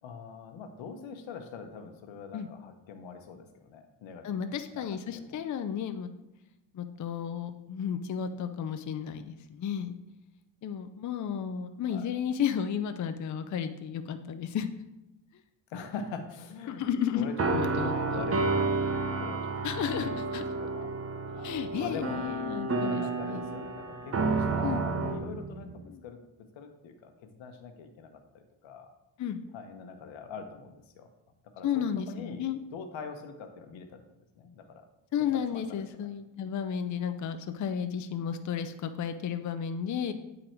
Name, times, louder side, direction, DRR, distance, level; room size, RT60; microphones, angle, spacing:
voice 1, 0.0-4.4 4.7-5.4 11.9-12.1 15.7-16.9 17.1-18.7 19.2-19.5 20.0-20.2 20.5-20.9 21.3-22.3 22.6-26.2 26.5-28.9 29.5-31.1 31.5-34.0 34.3-34.9 35.5-35.6 36.0-36.1, left 5 dB, 80° left, 7 dB, 1.0 m, -43 dB
voice 2, 4.2-6.1 6.7-10.0 10.6-14.7 16.8-18.2 19.6-20.4 21.4-23.4 24.6-24.8 25.9-26.0 29.2-29.4 31.6-32.6 35.1-40.1, left 8 dB, 40° left, 8 dB, 0.5 m, -33 dB
sound 1, 17.3-25.8, right 3 dB, 30° right, 0.7 m, -31 dB
9.1 x 3.9 x 4.4 m, 0.94 s
cardioid pair, 105°, 45 cm